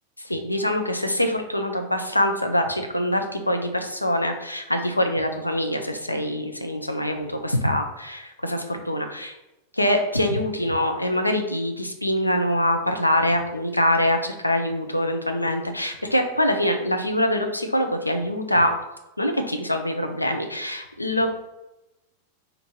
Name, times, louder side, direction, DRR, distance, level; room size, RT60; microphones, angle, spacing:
voice 1, 0.2-9.4 9.7-18.7 19.2-21.3, left 1 dB, 85° left, 5 dB, 0.5 m, -24 dB
4.3 x 2.6 x 4.4 m, 0.94 s
figure-of-eight pair, 90°, 0 cm